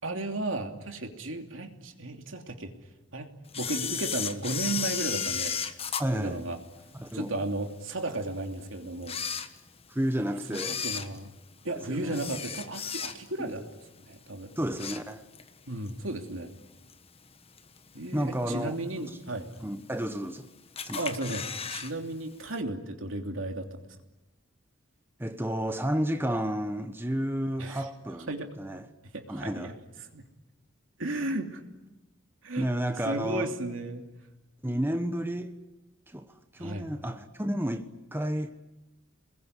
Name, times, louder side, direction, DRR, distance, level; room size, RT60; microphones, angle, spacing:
voice 1, 0.0-2.7 3.1-5.5 6.1-6.6 7.1-9.2 10.5-11.3 11.6-13.6 14.1-14.5 15.7-16.5 17.9-19.5 20.9-23.8 27.6-27.9 28.3-28.5 29.1-29.8 30.1-30.2 31.0-31.6 32.4-32.7 33.0-34.1 36.6-36.9, right 2 dB, 80° right, 3.0 m, -34 dB
Camera, 3.5-7.1 7.6-7.7 8.4-8.5 9.0-10.0 10.5-13.5 13.8-14.1 14.5-15.5 15.9-16.0 16.9-17.0 17.6-18.0 18.4-18.5 18.7-18.8 18.9-19.0 19.8-20.3 20.8-21.9 22.2-22.3 22.5-22.6, left 7 dB, 30° left, 1.3 m, -34 dB
voice 2, 6.0-6.4 6.9-7.3 9.9-10.8 11.9-12.2 13.4-13.6 14.6-15.2 18.1-19.1 19.6-20.5 20.8-21.0 25.2-28.3 28.6-28.9 29.3-29.7 32.6-33.5 34.6-35.6 36.1-38.5, equal, 10° right, 1.1 m, -31 dB
28.5 x 21.0 x 10.0 m
head